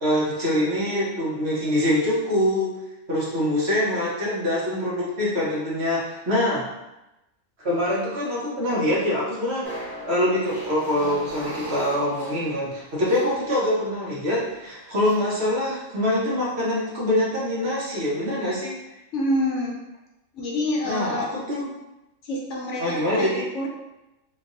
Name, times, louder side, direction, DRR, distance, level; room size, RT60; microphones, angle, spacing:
voice 1, 0.0-2.7 3.1-6.6 7.6-9.7 10.1-18.8 20.8-21.7 22.8-23.4, left 1 dB, 55° right, -6 dB, 1.1 m, -24 dB
sound 1, 9.6-14.1 14.8-15.2, right 1 dB, 90° right, 1.9 m, -38 dB
voice 2, 19.1-19.8 20.3-21.3 22.2-23.7, left 1 dB, 65° left, -2 dB, 1.0 m, -27 dB
3.9 x 2.7 x 2.6 m, 0.95 s
omnidirectional pair, 1.4 m